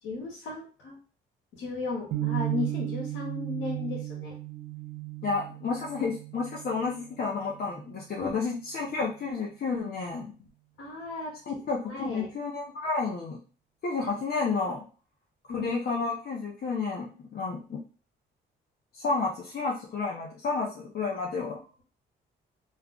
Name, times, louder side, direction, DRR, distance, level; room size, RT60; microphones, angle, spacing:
voice 1, 0.0-0.9 1.5-4.3 8.1-8.4 10.8-11.3 11.8-12.3 15.5-15.7 21.5-21.8, left 4 dB, 75° left, -3 dB, 0.9 m, -35 dB
sound 1, 2.1-8.2, right 16 dB, 85° right, 0.5 m, -35 dB
voice 2, 5.2-10.3 11.5-13.4 13.8-14.8 15.5-17.8 18.9-21.6, left 4 dB, 50° left, -2 dB, 0.7 m, -31 dB
2.3 x 2.3 x 3.7 m, 0.38 s
cardioid pair, 90°, 20 cm